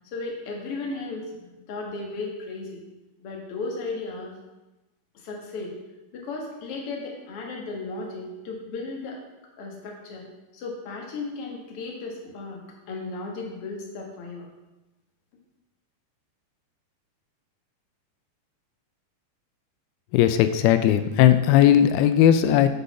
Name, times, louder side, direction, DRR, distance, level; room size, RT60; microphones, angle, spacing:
voice 1, 0.1-2.8 3.2-4.3 5.1-5.7 6.1-9.2 9.6-10.3 10.5-12.6 12.9-14.5, left 3 dB, 50° left, -1 dB, 2.1 m, -35 dB
voice 2, 20.1-22.7, left 11 dB, 90° left, 10 dB, 2.6 m, -17 dB
10.0 x 5.5 x 5.5 m, 1.0 s
omnidirectional pair, 4.4 m